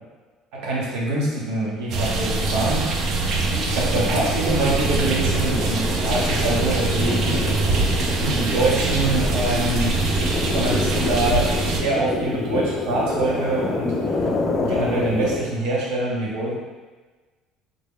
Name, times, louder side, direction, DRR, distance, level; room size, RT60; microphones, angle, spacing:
voice 1, 0.5-2.9 3.6-7.3 8.2-10.0 10.4-12.6 12.9-14.1 14.6-16.6, right 2 dB, 80° right, -4 dB, 0.9 m, -24 dB
sound 1, 1.9-11.8, right 3 dB, 50° right, 0.4 m, -23 dB
sound 2, 3.4-15.4, left 3 dB, 30° left, 0.4 m, -28 dB
3.8 x 3.4 x 2.2 m, 1.3 s
cardioid pair, 145°, 0 cm